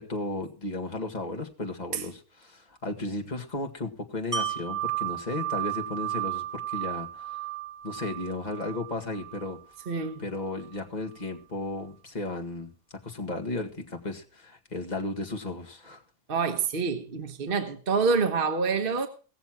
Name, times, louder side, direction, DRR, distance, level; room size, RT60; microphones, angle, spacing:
voice 1, 0.0-7.4 7.8-9.6 10.2-12.7 13.0-16.0, left 2 dB, 30° left, 2.0 m, -34 dB
Wind chime, 4.3-10.1 10.5-10.6, right 12 dB, 20° right, 3.0 m, -34 dB
voice 2, 9.9-10.2 16.3-19.1, right 5 dB, 40° right, 1.2 m, -27 dB
18.5 x 7.0 x 6.1 m
omnidirectional pair, 1.6 m